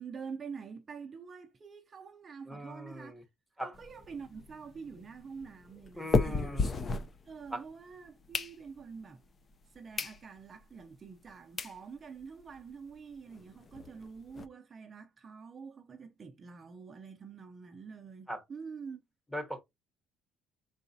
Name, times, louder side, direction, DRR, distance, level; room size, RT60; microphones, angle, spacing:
voice 1, 0.0-3.3 3.6-6.6 7.3-9.2 9.7-19.0, right 5 dB, 30° right, 0.5 m, -46 dB
voice 2, 2.4-3.2 3.6-3.7 6.0-6.7 7.5-7.6 18.3-18.4 19.3-19.6, equal, 5° left, 1.0 m, -39 dB
sound 1, 3.7-7.7 8.1-9.0 9.5-9.6 9.9-10.2 10.6-10.7 11.3-11.4 11.6-11.8 12.2-12.3 12.5-12.6 12.9-13.0 13.3-14.4, left 4 dB, 30° left, 0.5 m, -34 dB
4.7 x 3.9 x 2.6 m
cardioid pair, 120°, 0 cm